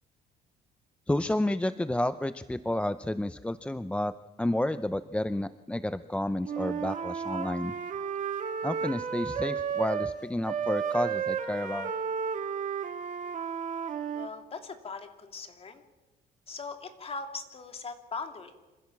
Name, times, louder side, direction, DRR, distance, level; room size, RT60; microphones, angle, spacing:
voice 1, 1.1-4.1 4.4-7.7 8.6-11.9, left 1 dB, 5° left, 13 dB, 0.6 m, -30 dB
Wind instrument woodwind instrument, 6.4-10.1 10.4-14.3, right 7 dB, 45° right, 2.0 m, -33 dB
voice 2, 14.1-15.8 16.5-18.5, left 4 dB, 35° left, 6 dB, 2.7 m, -40 dB
26.0 x 15.5 x 7.2 m, 1.2 s
cardioid pair, 110°, 17 cm